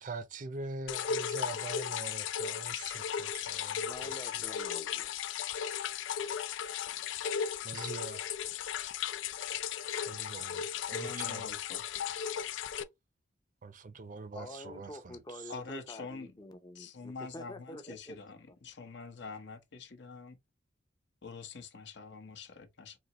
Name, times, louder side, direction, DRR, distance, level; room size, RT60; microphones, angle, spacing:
voice 1, 0.0-3.9 4.2-4.4 7.6-8.2 10.0-11.5 13.6-15.4, right 3 dB, 45° right, 0.5 m, -43 dB
sound 1, 0.9-12.8, left 8 dB, 80° left, 0.4 m, -36 dB
voice 2, 3.9-5.1 14.3-18.2, left 1 dB, 20° left, 0.6 m, -47 dB
voice 3, 10.9-11.8 15.5-16.3 16.7-20.4 21.2-23.0, left 4 dB, 65° left, 0.9 m, -45 dB
4.2 x 2.9 x 2.9 m
head